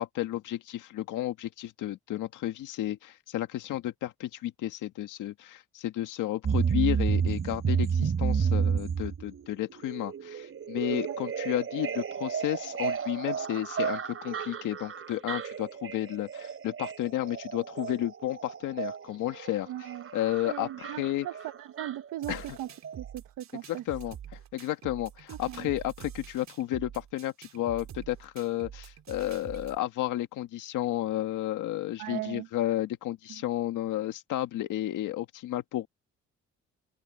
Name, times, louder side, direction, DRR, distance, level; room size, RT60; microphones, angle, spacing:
voice 1, 0.0-19.9 20.1-21.3 22.3-22.6 23.7-35.9, left 14 dB, 85° left, 1.9 m, -32 dB
sound 1, 6.4-22.6 22.8-22.9, right 7 dB, 45° right, 4.2 m, -32 dB
voice 2, 19.7-20.1 20.4-22.7 23.0-23.8 25.3-25.7 32.0-32.5, right 14 dB, 90° right, 1.4 m, -38 dB
sound 2, 22.2-29.8, right 9 dB, 65° right, 3.3 m, -46 dB
open air
cardioid pair, 90°, 30 cm